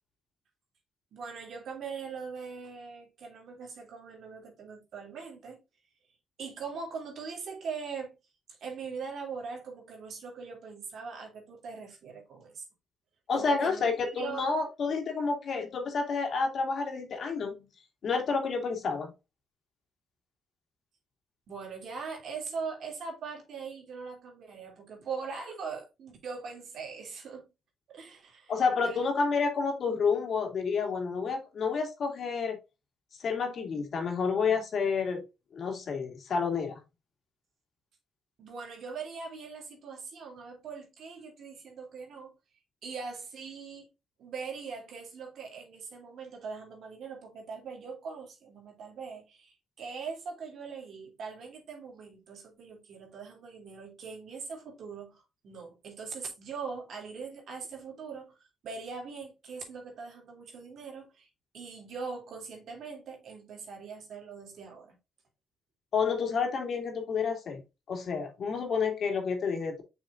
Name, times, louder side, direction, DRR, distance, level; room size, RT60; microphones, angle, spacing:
voice 1, 1.1-5.6 6.4-8.2 8.6-12.6 13.3-14.5 21.5-27.5 27.9-28.5 28.8-29.1 38.4-42.3 42.8-43.9 44.2-61.3 61.5-65.0, right 5 dB, 65° right, 3.0 m, -41 dB
voice 2, 13.3-17.7 18.0-19.1 28.5-32.6 33.2-35.2 35.5-36.8 65.9-67.6 67.9-69.8, left 5 dB, 55° left, 2.6 m, -29 dB
6.5 x 6.2 x 2.6 m
cardioid pair, 90°, 0 cm